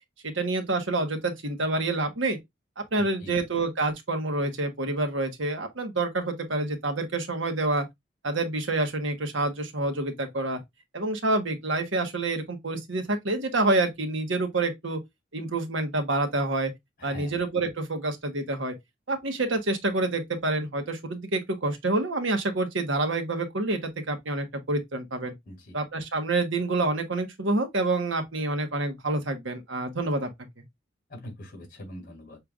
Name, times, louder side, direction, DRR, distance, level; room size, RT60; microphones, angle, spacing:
voice 1, 0.2-2.4 2.8-7.8 8.2-10.6 10.9-15.0 15.3-16.7 17.0-18.7 19.1-25.3 25.7-30.3, right 2 dB, 85° right, 1.3 m, -27 dB
voice 2, 3.0-3.4 17.0-17.3 25.4-25.8 31.1-32.4, left 1 dB, 50° left, 3.3 m, -43 dB
6.7 x 3.3 x 2.4 m
head